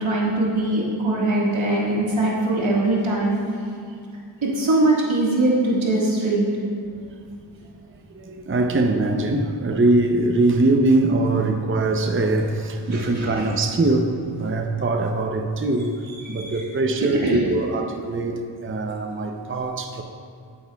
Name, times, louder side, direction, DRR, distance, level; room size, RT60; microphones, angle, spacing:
voice 1, 0.0-3.4 4.4-6.5 12.9-13.3 16.3-16.6 17.2-17.4, right 2 dB, 85° right, -5 dB, 1.8 m, -21 dB
voice 2, 8.1-15.9 16.3-20.0, right 2 dB, 25° right, 4 dB, 0.6 m, -22 dB
10.5 x 8.9 x 2.3 m, 2.3 s
wide cardioid pair, 50°, 46 cm